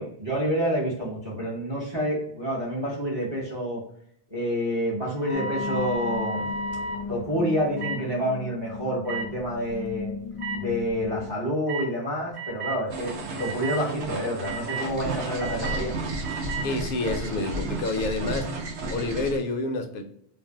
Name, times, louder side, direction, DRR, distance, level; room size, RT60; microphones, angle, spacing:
voice 1, 0.0-3.8 4.3-6.5 7.1-10.1 10.5-15.9, equal, 30° right, -5 dB, 0.7 m, -28 dB
sound 1, 5.2-7.0 7.8-8.0 9.0-9.2 10.4-10.5 11.7-11.9 12.3-12.8 13.4-13.8 14.4-14.9 15.4-15.8 16.2-16.7, right 2 dB, 55° right, 0.9 m, -33 dB
sound 2, 5.3-11.3, left 5 dB, 80° left, 1.0 m, -36 dB
sound 3, 12.9-19.4, right 2 dB, 85° right, 0.9 m, -33 dB
voice 2, 16.6-18.5 18.9-20.0, left 2 dB, 60° left, 5 dB, 0.7 m, -28 dB
2.5 x 2.0 x 3.4 m, 0.69 s
omnidirectional pair, 1.1 m